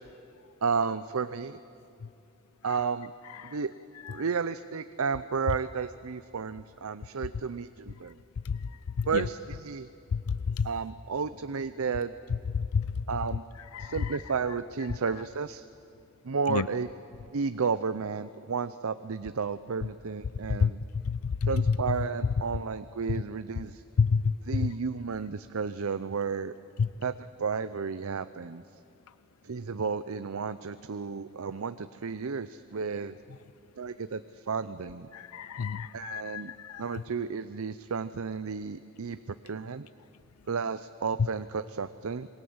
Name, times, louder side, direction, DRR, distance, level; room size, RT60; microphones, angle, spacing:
voice 1, 0.6-1.6 2.6-3.1 3.4-3.7 4.1-8.2 9.1-9.9 10.6-12.1 13.1-13.4 13.8-15.6 16.2-16.9 17.3-20.8 21.4-23.8 24.4-26.5 27.0-28.6 29.4-33.2 33.8-35.1 35.9-36.5 36.8-39.9 40.5-42.3, right 5 dB, 70° right, 12 dB, 0.6 m, -32 dB
voice 2, 21.1-21.5 24.0-24.2 35.1-36.8, left 5 dB, 85° left, 16 dB, 0.5 m, -28 dB
27.0 x 22.0 x 8.0 m, 2.7 s
head